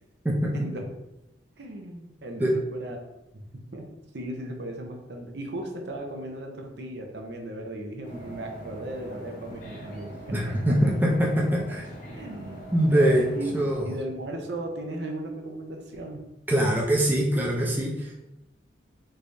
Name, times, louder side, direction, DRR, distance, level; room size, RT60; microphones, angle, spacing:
voice 1, 0.5-0.8 1.6-3.0 3.7-3.8 4.1-10.1 12.2-13.6 13.8-16.3, right 1 dB, 65° right, 2 dB, 0.6 m, -36 dB
sound 1, 8.0-13.8, equal, 45° left, 0.8 m, -41 dB
voice 2, 10.3-11.9 12.7-13.3 13.5-13.9 16.5-18.1, right 1 dB, 10° right, -3 dB, 0.4 m, -23 dB
3.3 x 3.3 x 2.6 m, 0.93 s
head